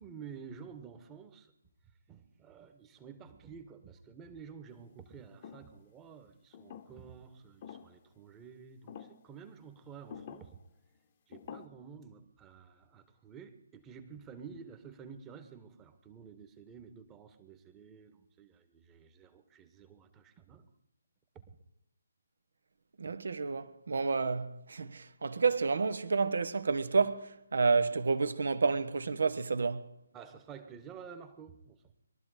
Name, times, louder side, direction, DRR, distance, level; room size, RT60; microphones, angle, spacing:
voice 1, 0.0-1.5 2.1-10.6 11.3-20.7 21.4-21.6 24.8-24.9 30.1-31.8, right 6 dB, 15° right, 1.6 m, -51 dB
sound 1, 5.4-5.8 6.5-7.2 7.6-8.0 8.9-9.2 10.1-10.5 11.3-11.7, left 8 dB, 35° left, 1.1 m, -48 dB
voice 2, 23.0-29.9, right 4 dB, 60° right, 1.3 m, -30 dB
22.0 x 13.0 x 5.0 m
figure-of-eight pair, 140°, 0 cm